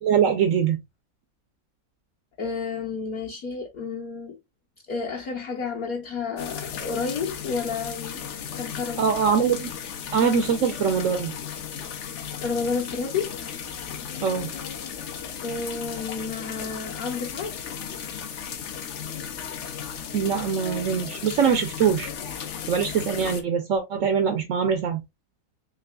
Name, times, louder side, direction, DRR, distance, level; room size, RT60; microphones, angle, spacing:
voice 1, 0.0-0.8 9.0-9.7 10.1-11.3 14.2-14.5 20.1-22.1 22.7-25.0, right 7 dB, 85° right, 0.6 m, -23 dB
voice 2, 2.4-4.4 4.9-8.2 8.5-9.1 12.4-13.3 15.4-17.5, left 5 dB, 60° left, 1.0 m, -30 dB
sound 1, 6.4-23.4, left 7 dB, 90° left, 0.6 m, -35 dB
3.7 x 3.3 x 2.3 m
omnidirectional pair, 2.0 m